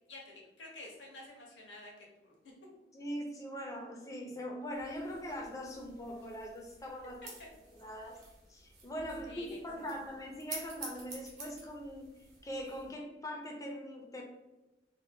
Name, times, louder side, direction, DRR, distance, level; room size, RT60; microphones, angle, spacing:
voice 1, 0.1-2.3 7.2-7.3 9.2-9.9, left 2 dB, 90° left, -1 dB, 0.9 m, -50 dB
voice 2, 2.9-7.2 7.7-8.2 8.5-12.0 12.4-14.2, equal, 20° left, 1 dB, 0.5 m, -41 dB
sound 1, 4.7-12.9, right 3 dB, 45° right, 0.8 m, -50 dB
2.7 x 2.2 x 3.4 m, 1.0 s
head